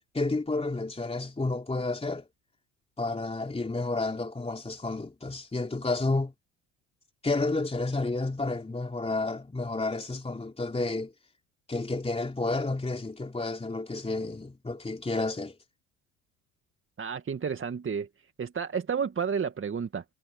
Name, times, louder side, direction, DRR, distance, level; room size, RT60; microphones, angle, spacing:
voice 1, 0.0-2.3 3.0-6.3 7.2-11.1 11.7-15.6, left 2 dB, 15° left, 3.5 m, -31 dB
voice 2, 17.0-20.0, right 6 dB, 30° right, 2.1 m, -31 dB
hypercardioid pair, 60°, 40 cm